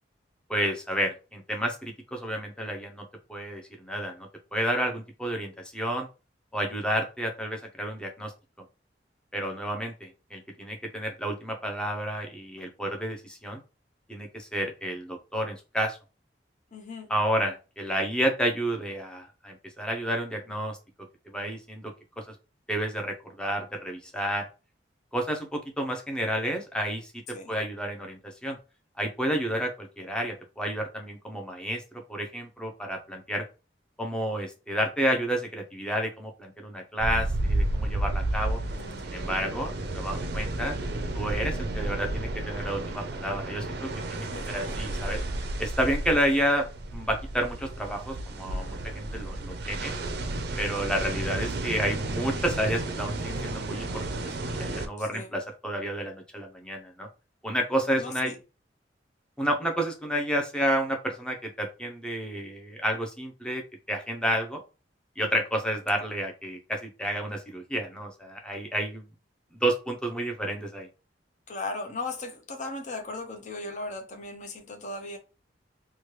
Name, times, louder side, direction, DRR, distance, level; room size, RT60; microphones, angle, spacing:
voice 1, 0.5-3.0 3.3-6.1 6.5-8.3 9.3-13.6 14.1-16.0 17.1-20.8 21.3-22.2 22.7-24.5 25.1-27.1 27.5-28.6 29.0-33.5 34.0-38.6 39.0-40.8 41.1-45.2 45.6-46.7 46.9-49.9 50.6-57.1 57.4-58.3 59.4-64.6 65.2-69.0 69.5-70.9, equal, 5° left, 0.6 m, -30 dB
voice 2, 16.7-17.1 27.3-27.5 38.6-39.1 44.3-44.5 55.0-55.3 58.0-58.4 71.5-75.2, left 2 dB, 45° left, 0.7 m, -37 dB
sound 1, 37.0-54.9, right 2 dB, 65° right, 0.5 m, -32 dB
3.1 x 2.3 x 3.0 m
head